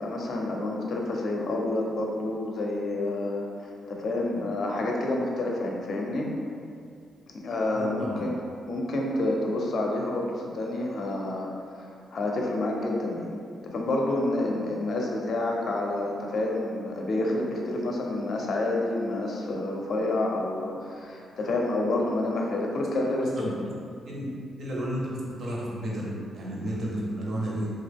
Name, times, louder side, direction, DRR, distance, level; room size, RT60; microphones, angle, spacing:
voice 1, 0.0-6.3 7.3-8.4 8.7-11.5 11.7-13.3 13.6-23.5, left 2 dB, 55° left, -1 dB, 0.5 m, -29 dB
voice 2, 7.7-8.2 23.4-23.5 24.0-24.3 24.6-27.7, right 1 dB, 60° right, -4 dB, 0.7 m, -32 dB
2.9 x 2.3 x 3.4 m, 2.4 s
cardioid pair, 110°, 0 cm